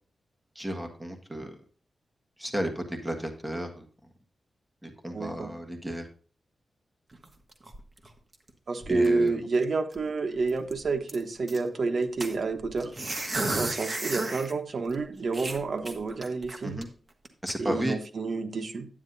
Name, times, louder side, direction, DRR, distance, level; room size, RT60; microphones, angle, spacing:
voice 1, 0.5-1.5 2.4-3.8 4.8-6.1 8.9-9.4 13.4-13.7 16.6-16.9 17.4-18.0, equal, 5° right, 3 dB, 1.6 m, -33 dB
voice 2, 5.1-5.5 8.7-12.9 13.5-16.8 17.6-18.9, right 3 dB, 60° right, 6 dB, 1.1 m, -29 dB
sound 1, 7.1-8.5 8.8-9.3 9.6-9.7 9.9-10.1 10.5-11.6 12.2-14.5 14.9-15.0 15.3-16.8 17.2-17.5, right 2 dB, 35° right, 1.3 m, -34 dB
9.7 x 9.4 x 2.7 m, 0.42 s
wide cardioid pair, 105°, 0 cm